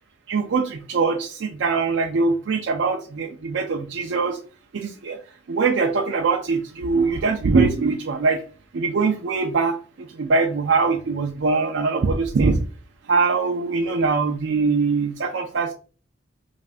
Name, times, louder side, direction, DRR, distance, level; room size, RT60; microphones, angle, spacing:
voice 1, 0.3-4.4 4.7-5.2 5.5-8.4 8.7-12.6 13.1-15.7, right 4 dB, 65° right, 3 dB, 0.4 m, -22 dB
5.4 x 2.5 x 2.5 m, 0.39 s
head